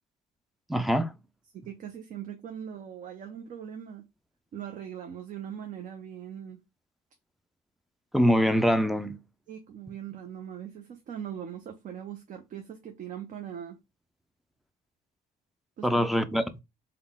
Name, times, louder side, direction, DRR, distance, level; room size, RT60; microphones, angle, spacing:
voice 1, 0.7-1.1 8.1-9.2 15.8-16.4, equal, ahead, 0.4 m, -23 dB
voice 2, 1.5-4.0 4.5-6.6 9.5-13.8 15.8-16.1, right 9 dB, 50° right, 0.7 m, -40 dB
3.6 x 2.3 x 3.6 m
cardioid pair, 110°, 17 cm